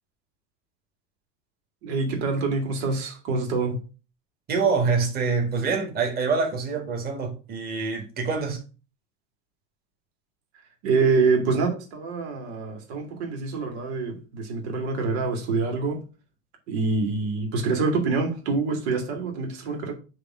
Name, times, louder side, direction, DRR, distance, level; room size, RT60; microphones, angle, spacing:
voice 1, 1.8-3.8 10.8-16.0 16.7-19.9, right 4 dB, 90° right, 2.2 m, -26 dB
voice 2, 4.5-8.6, right 4 dB, 30° right, 1.8 m, -25 dB
6.8 x 3.1 x 6.0 m
cardioid pair, 155°, 31 cm